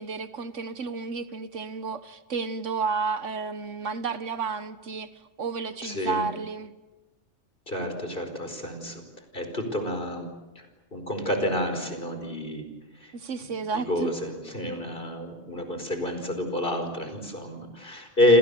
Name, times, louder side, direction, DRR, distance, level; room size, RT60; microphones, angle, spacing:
voice 1, 0.0-5.1 5.4-6.7 13.1-14.1, right 5 dB, 75° right, 12 dB, 1.6 m, -32 dB
voice 2, 5.8-6.2 7.7-9.0 9.3-10.3 10.6-10.7 10.9-12.7 13.0-13.1 13.7-18.4, left 1 dB, 45° left, 6 dB, 5.1 m, -28 dB
29.5 x 26.5 x 7.0 m, 1.1 s
omnidirectional pair, 1.3 m